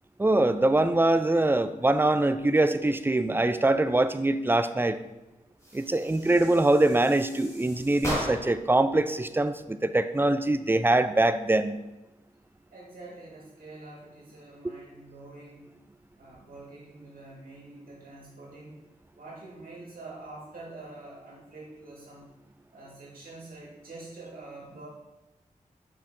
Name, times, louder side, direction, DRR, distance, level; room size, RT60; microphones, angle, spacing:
voice 1, 0.2-5.0 5.7-11.8, right 2 dB, 15° right, 11 dB, 0.4 m, -23 dB
sound 1, 5.6-8.7, equal, 20° left, 2.3 m, -37 dB
voice 2, 12.7-15.7 16.2-18.8 19.2-22.3 22.7-24.9, right 2 dB, 90° right, -4 dB, 1.9 m, -46 dB
6.5 x 6.0 x 3.8 m, 1.0 s
wide cardioid pair, 70°, 14 cm